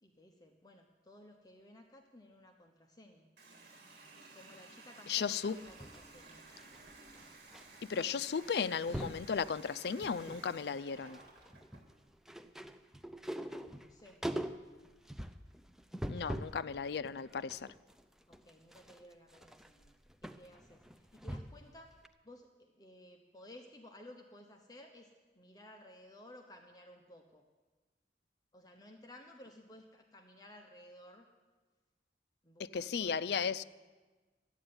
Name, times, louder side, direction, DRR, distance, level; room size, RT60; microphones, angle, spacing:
voice 1, 0.0-3.3 4.3-6.5 13.8-14.2 16.0-16.4 18.3-19.9 20.2-22.0 22.2-27.4 28.5-31.3 32.4-33.6, left 1 dB, 20° left, 1.0 m, -56 dB
Water tap faucet, 3.4-11.9, right 3 dB, 60° right, 3.0 m, -56 dB
voice 2, 5.1-5.6 7.9-11.2 16.1-17.7 32.6-33.6, left 6 dB, 70° left, 0.4 m, -35 dB
sound 1, 5.5-7.6 7.9-8.2 8.4-9.3 9.8-10.5 10.8-16.6 17.0-21.7 22.0-22.1, right 1 dB, 5° right, 0.5 m, -43 dB
13.0 x 8.8 x 9.5 m
head